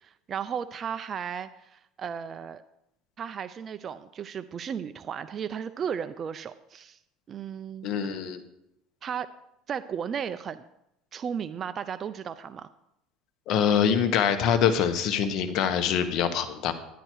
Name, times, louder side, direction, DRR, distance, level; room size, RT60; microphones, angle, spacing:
voice 1, 0.0-2.6 3.2-7.0 7.3-8.2 9.0-9.3 9.7-10.6 11.1-12.7, right 7 dB, 30° right, 11 dB, 0.4 m, -35 dB
voice 2, 7.8-8.4 13.5-16.7, left 8 dB, 50° left, 8 dB, 1.3 m, -24 dB
11.5 x 10.0 x 4.6 m, 0.82 s
cardioid pair, 140°, 0 cm